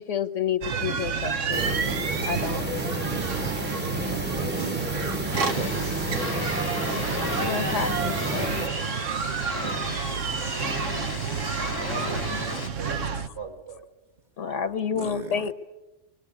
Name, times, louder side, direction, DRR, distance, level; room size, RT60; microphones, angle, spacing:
voice 1, 0.0-2.7 7.1-8.6 14.4-15.5, left 7 dB, 75° left, 9 dB, 1.5 m, -30 dB
sound 1, 0.6-13.3, right 6 dB, 85° right, 1.4 m, -30 dB
sound 2, 1.5-8.7, equal, 10° right, 0.9 m, -31 dB
voice 2, 4.1-6.1 10.1-10.2 14.9-15.4, right 5 dB, 40° right, 3 dB, 1.1 m, -38 dB
sound 3, 5.3-12.7, left 2 dB, 20° left, 0.9 m, -35 dB
voice 3, 11.8-13.8, right 2 dB, 55° right, 4 dB, 3.7 m, -38 dB
25.0 x 21.5 x 9.5 m, 1.1 s
omnidirectional pair, 1.2 m